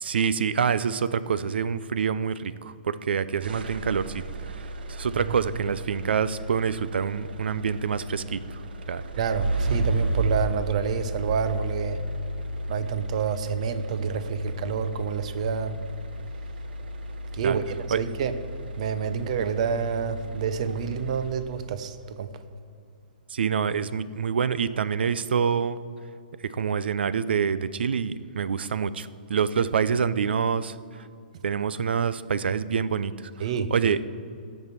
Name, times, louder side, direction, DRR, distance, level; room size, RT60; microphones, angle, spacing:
voice 1, 0.0-4.2 4.9-8.4 8.9-9.0 17.4-17.6 17.9-18.0 23.3-25.8 26.4-30.8 31.4-33.3 33.7-34.0, right 6 dB, 85° right, 15 dB, 0.5 m, -26 dB
sound 1, 3.4-21.7, right 1 dB, 65° right, 0.9 m, -33 dB
voice 2, 9.2-12.0 12.7-15.8 17.3-18.3 18.8-22.3 33.4-33.7, right 7 dB, 40° right, 11 dB, 0.7 m, -28 dB
16.5 x 5.5 x 5.9 m, 2.4 s
hypercardioid pair, 170°, 6 cm